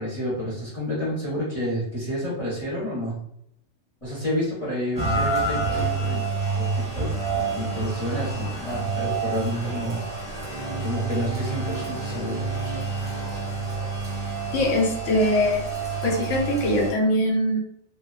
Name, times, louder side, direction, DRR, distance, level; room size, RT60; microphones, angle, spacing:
voice 1, 0.0-3.2 4.0-6.2 6.5-7.1 7.5-10.0 10.4-12.4, equal, 30° left, -7 dB, 0.8 m, -30 dB
Rain, 4.9-16.9, right 3 dB, 20° right, 0.8 m, -28 dB
sound 1, 10.5-16.4, right 2 dB, 60° right, 0.6 m, -40 dB
voice 2, 14.5-15.7 16.0-17.6, left 1 dB, 85° left, 2 dB, 1.0 m, -22 dB
2.7 x 2.2 x 2.3 m, 0.74 s
omnidirectional pair, 1.2 m